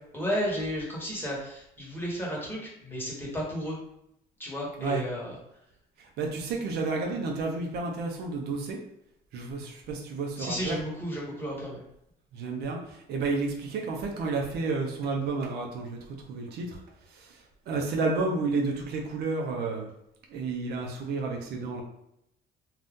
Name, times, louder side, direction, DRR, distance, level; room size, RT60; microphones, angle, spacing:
voice 1, 0.1-3.8 4.4-5.3 10.4-11.8, equal, 10° left, -4 dB, 1.2 m, -33 dB
voice 2, 6.0-8.8 9.3-10.7 12.3-16.0 16.3-16.8 17.1-17.4 17.7-19.9 20.3-21.8, right 3 dB, 70° right, 1 dB, 0.6 m, -31 dB
2.6 x 2.4 x 3.6 m, 0.78 s
cardioid pair, 110°, 17 cm